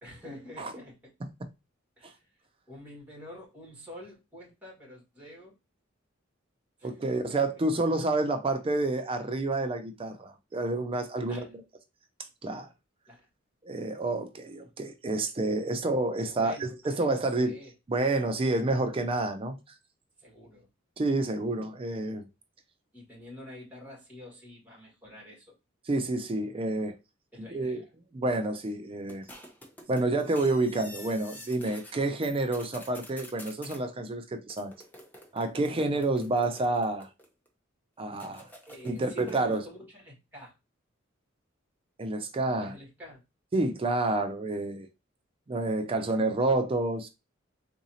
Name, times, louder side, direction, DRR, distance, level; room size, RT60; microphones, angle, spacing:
voice 1, 0.0-1.1 2.0-2.2 2.7-5.5 6.8-7.4 11.3-11.6 13.1-13.3 16.2-17.7 20.2-20.7 22.9-25.6 27.3-27.8 38.7-40.6 42.4-43.2, left 1 dB, 10° right, 1.8 m, -47 dB
voice 2, 6.8-11.5 12.4-12.7 13.6-17.5 17.9-19.8 21.0-22.3 25.9-26.9 27.5-27.8 28.1-29.2 29.9-34.7 35.3-37.1 38.0-38.5 38.8-39.6 42.0-42.7 43.5-44.9 45.5-47.1, right 2 dB, 25° right, 0.4 m, -29 dB
sound 1, 29.1-31.9 32.2-33.8 34.5-37.5 38.1-39.6, left 1 dB, 10° left, 0.7 m, -49 dB
3.9 x 2.6 x 2.8 m
head